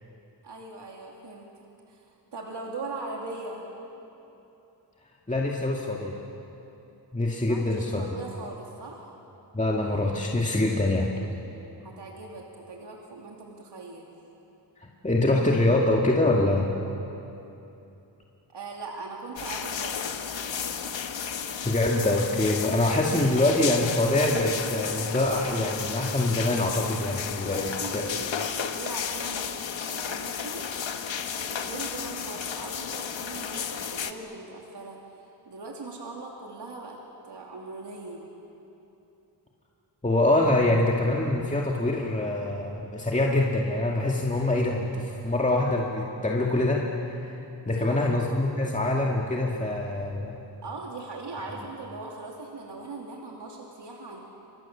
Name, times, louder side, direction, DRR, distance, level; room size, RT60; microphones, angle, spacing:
voice 1, 0.4-1.5 1.9-2.0 2.3-3.7 7.4-9.1 11.8-14.1 18.5-20.2 27.1-29.6 29.9-30.7 31.5-35.0 35.5-38.3 47.6-48.3 50.6-54.2, right 3 dB, 65° right, -1 dB, 2.8 m, -40 dB
voice 2, 5.3-6.1 7.1-8.0 9.5-11.1 14.8-16.7 21.6-27.7 27.9-28.0 40.0-47.3 47.7-50.4, left 2 dB, 15° left, -2 dB, 2.1 m, -25 dB
sound 1, 19.4-34.1, left 7 dB, 85° left, 1.4 m, -33 dB
30.0 x 26.5 x 7.3 m, 3.0 s
wide cardioid pair, 125°, 44 cm